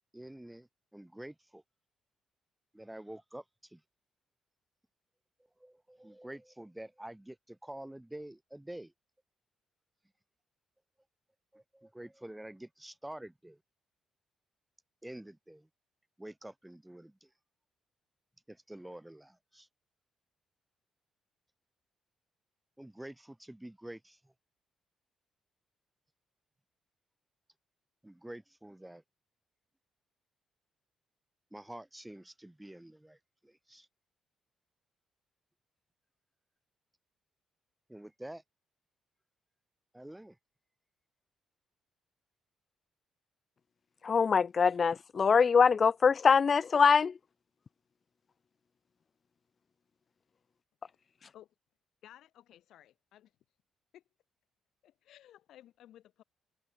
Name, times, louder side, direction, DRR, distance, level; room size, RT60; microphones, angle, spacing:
voice 1, 0.1-1.6 2.7-3.8 5.6-8.9 11.5-13.6 15.0-15.7 16.2-17.3 18.5-19.7 22.8-24.3 28.0-29.0 31.5-33.2 33.4-33.9 37.9-38.4 39.9-40.4, right 1 dB, 5° right, 3.3 m, -48 dB
voice 2, 44.0-47.1, left 6 dB, 40° left, 0.3 m, -24 dB
voice 3, 52.0-53.3 53.9-54.0 54.8-56.2, left 12 dB, 80° left, 2.1 m, -57 dB
open air
cardioid pair, 90°, 0 cm